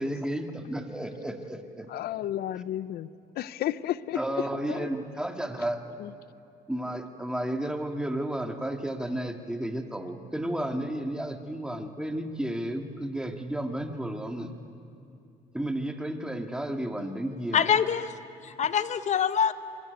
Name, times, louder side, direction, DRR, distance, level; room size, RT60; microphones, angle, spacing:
voice 1, 0.0-1.9 4.1-6.1 6.7-14.5 15.5-17.7, right 1 dB, 5° right, 2.1 m, -32 dB
voice 2, 1.9-3.1 3.4-4.9 6.0-6.1, left 12 dB, 65° left, 0.8 m, -32 dB
voice 3, 17.5-18.1 18.4-19.5, left 8 dB, 45° left, 1.2 m, -25 dB
26.0 x 23.0 x 9.5 m
cardioid pair, 110°, 17 cm